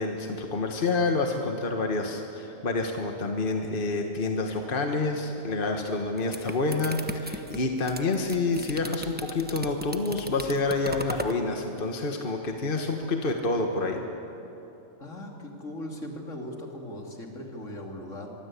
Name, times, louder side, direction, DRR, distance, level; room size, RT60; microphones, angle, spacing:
voice 1, 0.0-14.0, left 3 dB, 45° left, 3 dB, 1.7 m, -28 dB
sound 1, 6.0-11.4, right 1 dB, 10° right, 1.1 m, -38 dB
voice 2, 15.0-18.3, left 1 dB, 70° left, 1 dB, 3.2 m, -39 dB
24.0 x 23.5 x 8.4 m, 3.0 s
omnidirectional pair, 1.4 m